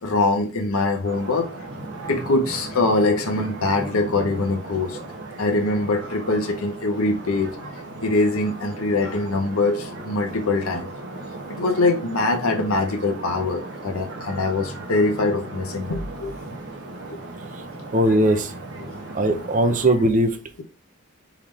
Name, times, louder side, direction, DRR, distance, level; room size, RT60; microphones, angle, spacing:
voice 1, 0.0-1.7 2.1-5.0 5.4-7.5 8.0-10.9 11.5-16.3 17.1-17.2 18.8-19.0, left 2 dB, 75° left, 0.8 m, -23 dB
sound 1, 1.0-19.9, right 2 dB, 55° right, 1.2 m, -36 dB
voice 2, 17.9-18.5 19.1-20.4, right 1 dB, 35° right, 0.7 m, -19 dB
4.6 x 3.2 x 3.6 m
head